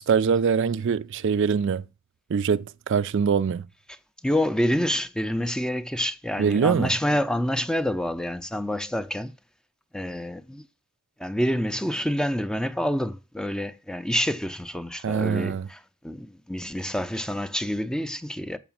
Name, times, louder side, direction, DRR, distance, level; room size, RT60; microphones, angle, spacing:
voice 1, 0.0-1.8 2.3-3.7 6.4-6.9 15.0-15.7, right 6 dB, 60° right, 0.4 m, -23 dB
voice 2, 4.2-9.3 9.9-10.7 11.2-18.6, equal, 5° left, 0.5 m, -27 dB
7.1 x 5.9 x 7.2 m
head